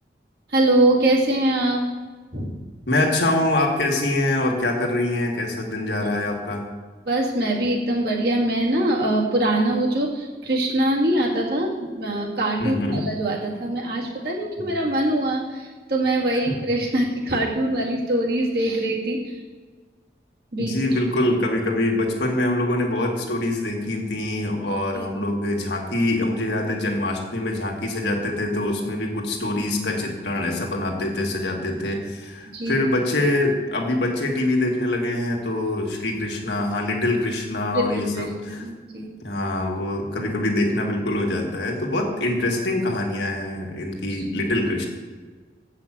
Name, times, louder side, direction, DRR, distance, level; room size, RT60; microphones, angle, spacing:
voice 1, 0.5-1.8 2.3-2.6 6.0-6.1 7.1-19.4 20.5-21.0 24.9-25.3 32.5-32.8 37.7-39.1 44.1-44.3, right 1 dB, 60° right, -3 dB, 2.0 m, -23 dB
voice 2, 2.9-6.6 12.6-13.1 14.6-14.7 16.5-16.6 20.6-38.6 39.2-44.9, left 1 dB, 75° left, 1 dB, 1.7 m, -24 dB
7.9 x 5.7 x 7.4 m, 1.4 s
head